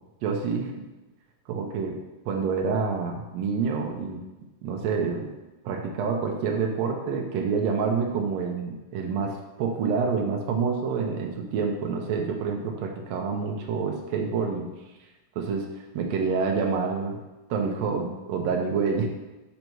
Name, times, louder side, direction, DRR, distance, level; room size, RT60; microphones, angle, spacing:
voice 1, 0.2-0.7 1.5-2.0 2.3-4.2 4.6-5.3 5.6-14.7 15.4-15.7 15.9-17.2 17.5-19.1, right 5 dB, 70° right, 1 dB, 1.8 m, -27 dB
5.8 x 5.4 x 4.5 m, 1.1 s
omnidirectional pair, 3.3 m